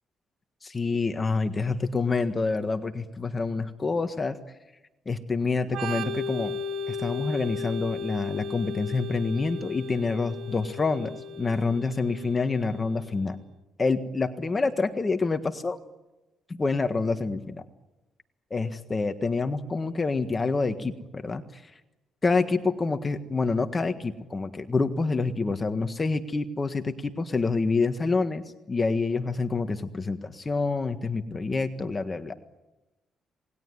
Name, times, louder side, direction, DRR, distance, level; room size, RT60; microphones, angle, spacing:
voice 1, 0.6-4.4 5.0-6.5 6.9-13.4 13.8-15.8 16.5-17.6 18.5-21.7 22.2-32.3, left 4 dB, 30° left, 8 dB, 1.6 m, -27 dB
Organ, 5.7-13.2, left 3 dB, 75° right, 2.9 m, -36 dB
27.0 x 20.5 x 9.7 m, 1.0 s
cardioid pair, 90°, 0 cm